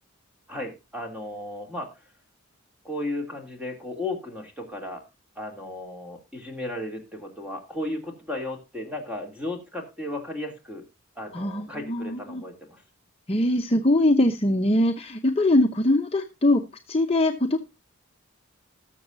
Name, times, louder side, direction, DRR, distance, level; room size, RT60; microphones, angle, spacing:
voice 1, 0.5-1.9 2.8-5.0 5.4-10.8 11.2-12.8, left 1 dB, 5° right, 3 dB, 2.7 m, -35 dB
voice 2, 11.3-12.4 13.3-16.6 16.9-17.6, left 1 dB, 25° left, 3 dB, 0.8 m, -22 dB
19.5 x 7.1 x 2.6 m, 0.26 s
head